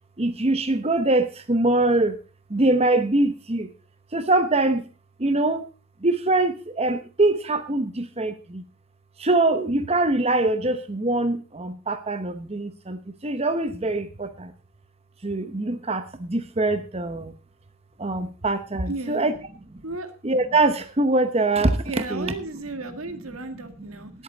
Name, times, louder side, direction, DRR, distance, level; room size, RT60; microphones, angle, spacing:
voice 1, 0.2-2.2 2.5-3.7 4.1-4.8 5.2-5.7 6.0-8.6 9.2-14.5 15.2-17.3 18.0-19.3 20.2-21.8 22.1-22.3, right 2 dB, 30° right, 10 dB, 0.9 m, -23 dB
voice 2, 18.9-19.3 19.8-20.1 21.9-24.1, right 2 dB, 90° right, 8 dB, 2.0 m, -34 dB
18.5 x 8.4 x 3.9 m, 0.33 s
head